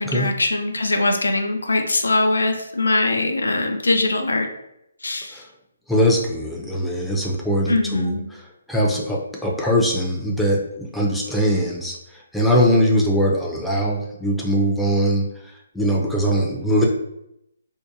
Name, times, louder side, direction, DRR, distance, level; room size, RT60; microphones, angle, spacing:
voice 1, 0.0-4.5 5.0-5.4 7.7-8.3, left 2 dB, 80° left, 4 dB, 0.4 m, -21 dB
voice 2, 5.9-8.4 8.7-12.0 12.3-16.9, equal, ahead, -3 dB, 0.4 m, -21 dB
2.7 x 2.2 x 2.4 m, 0.81 s
figure-of-eight pair, 140°, 0 cm